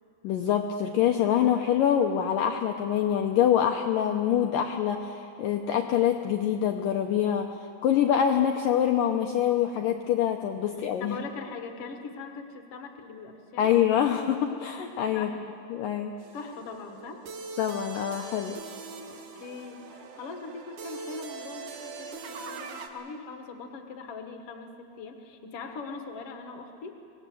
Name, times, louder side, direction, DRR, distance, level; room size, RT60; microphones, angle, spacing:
voice 1, 0.2-7.5 7.8-11.2 13.6-15.3 15.7-16.1 17.6-18.6, left 9 dB, 85° left, 4 dB, 2.0 m, -25 dB
voice 2, 11.0-13.7 15.1-15.4 16.3-17.2 19.1-27.0, left 4 dB, 55° left, 4 dB, 1.6 m, -41 dB
sound 1, 16.2-22.9, right 4 dB, 60° right, 2.5 m, -42 dB
25.5 x 19.5 x 7.8 m, 2.8 s
omnidirectional pair, 4.9 m